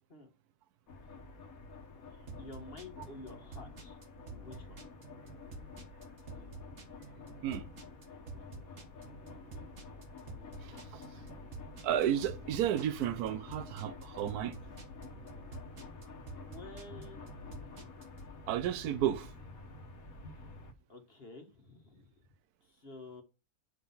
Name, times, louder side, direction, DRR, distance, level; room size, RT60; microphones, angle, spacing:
sound 1, 0.9-20.7, left 3 dB, 70° left, 1.5 m, -50 dB
sound 2, 2.3-18.2, right 3 dB, 50° right, 1.4 m, -49 dB
voice 1, 2.4-4.0 4.3-4.8 16.4-17.2 20.9-22.1 22.7-23.2, left 2 dB, 40° left, 1.5 m, -50 dB
voice 2, 10.6-11.0 11.8-14.5 18.5-19.3, right 10 dB, 80° right, 1.1 m, -32 dB
8.4 x 3.7 x 5.6 m
omnidirectional pair, 1.6 m